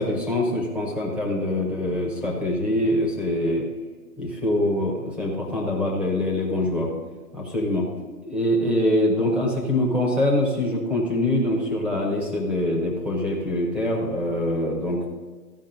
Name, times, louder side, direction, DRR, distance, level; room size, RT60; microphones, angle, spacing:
voice 1, 0.0-3.6 4.2-6.9 7.3-7.9 8.2-15.1, left 1 dB, ahead, -2 dB, 0.9 m, -24 dB
13.5 x 5.3 x 5.1 m, 1.4 s
hypercardioid pair, 150°, 48 cm